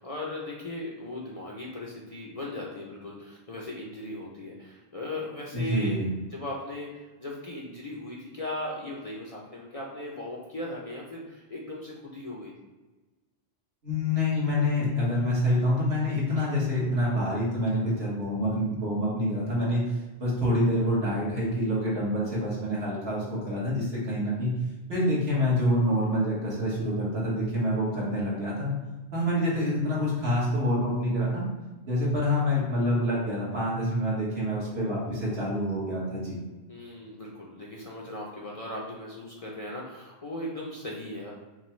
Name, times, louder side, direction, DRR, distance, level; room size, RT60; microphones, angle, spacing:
voice 1, 0.0-6.0 6.3-12.5 36.7-41.3, left 1 dB, 40° left, -3 dB, 0.6 m, -38 dB
voice 2, 5.5-6.1 13.8-19.8 20.2-24.5 24.9-28.7 29.1-31.5 31.8-36.4, left 1 dB, 70° right, -6 dB, 1.7 m, -27 dB
5.7 x 2.2 x 3.1 m, 1.2 s
omnidirectional pair, 1.1 m